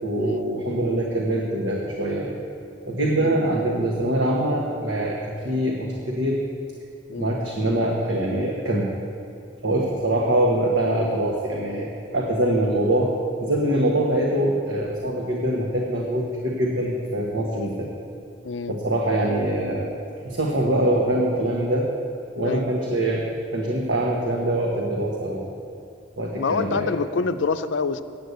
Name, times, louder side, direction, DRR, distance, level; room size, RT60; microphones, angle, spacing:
voice 1, 0.0-2.3 2.8-6.4 7.1-8.9 9.6-13.1 13.4-17.9 18.7-19.9 20.2-21.9 22.4-25.4 26.2-26.9, right 1 dB, 90° right, -2 dB, 1.3 m, -24 dB
voice 2, 18.4-18.7 22.4-22.7 26.4-28.0, left 4 dB, 85° left, 11 dB, 0.5 m, -27 dB
8.7 x 8.3 x 8.0 m, 2.6 s
head